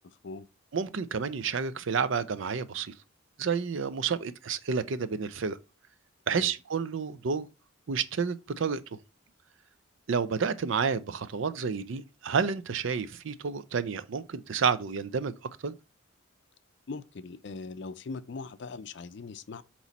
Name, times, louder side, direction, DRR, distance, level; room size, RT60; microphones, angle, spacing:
voice 1, 0.0-0.5 6.3-6.5 16.9-19.6, left 4 dB, 55° left, 0.4 m, -40 dB
voice 2, 0.7-2.9 3.4-5.6 6.3-7.5 7.9-8.8 10.1-15.3 15.6-15.7, right 5 dB, 65° right, 0.5 m, -30 dB
8.1 x 3.1 x 4.1 m
head